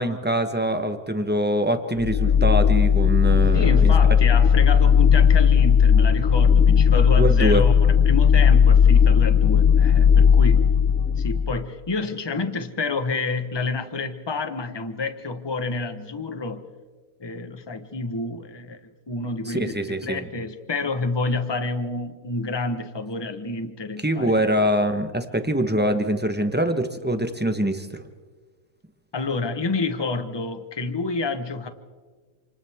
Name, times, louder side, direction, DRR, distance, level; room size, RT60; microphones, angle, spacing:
voice 1, 0.0-4.1 7.1-7.6 19.4-20.3 24.0-28.0, right 1 dB, 10° right, 7 dB, 0.7 m, -24 dB
sound 1, 2.0-11.6, left 7 dB, 55° left, 0.9 m, -16 dB
voice 2, 3.5-10.7 11.2-16.6 17.2-24.6 29.1-31.7, left 3 dB, 20° left, 8 dB, 0.8 m, -29 dB
28.5 x 28.0 x 3.6 m, 1.4 s
omnidirectional pair, 2.2 m